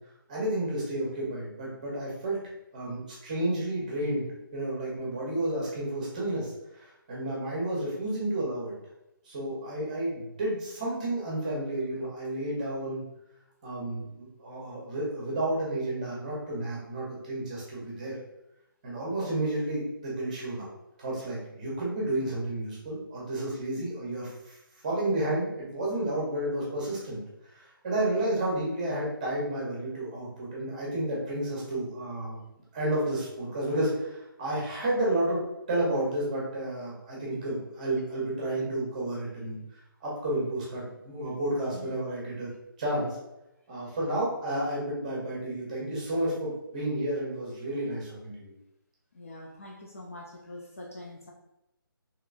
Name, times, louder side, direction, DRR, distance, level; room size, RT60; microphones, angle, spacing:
voice 1, 0.3-2.4 2.7-8.8 9.2-13.0 13.6-18.2 18.8-20.7 21.0-24.6 24.8-27.2 27.5-32.4 32.7-35.4 35.7-39.6 40.0-42.5 42.8-43.2 43.7-48.5, right 1 dB, 20° right, -5 dB, 0.8 m, -31 dB
voice 2, 49.1-51.3, left 1 dB, 40° left, 0 dB, 0.4 m, -44 dB
3.6 x 2.9 x 2.5 m, 0.91 s
hypercardioid pair, 170°, 12 cm